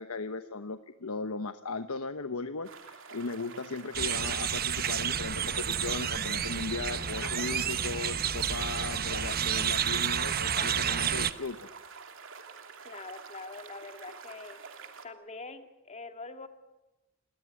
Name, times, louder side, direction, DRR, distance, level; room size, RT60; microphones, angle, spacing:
voice 1, 0.0-11.7, left 3 dB, 90° left, 9 dB, 1.1 m, -37 dB
sound 1, 2.6-15.0, right 5 dB, 65° right, 2.8 m, -48 dB
sound 2, 3.9-11.3, right 8 dB, 45° right, 1.0 m, -30 dB
voice 2, 12.8-14.6 15.0-16.5, left 3 dB, 30° left, 7 dB, 2.1 m, -44 dB
28.5 x 21.0 x 9.8 m, 1.0 s
head